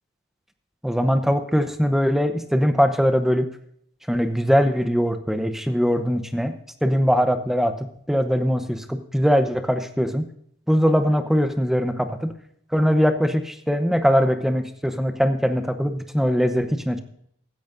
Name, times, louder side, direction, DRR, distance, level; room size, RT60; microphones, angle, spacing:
voice 1, 0.8-3.5 4.1-10.3 10.7-12.4 12.7-17.0, equal, ahead, 8 dB, 0.8 m, -21 dB
16.0 x 13.5 x 2.6 m, 0.69 s
head